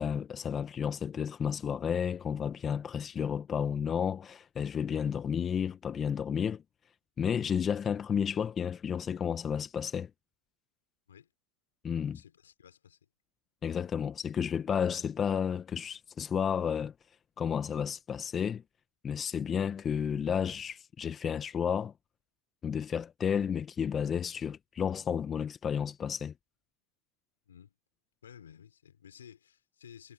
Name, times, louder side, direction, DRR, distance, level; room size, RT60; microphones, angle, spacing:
voice 1, 0.0-6.6 7.2-10.1 11.8-12.2 13.6-16.9 17.4-18.6 19.0-21.9 22.6-26.3, left 7 dB, 25° left, 1.3 m, -32 dB
voice 2, 12.1-13.1 27.5-27.8 28.2-30.1, left 8 dB, 90° left, 5.4 m, -54 dB
hypercardioid pair, 110°, 0 cm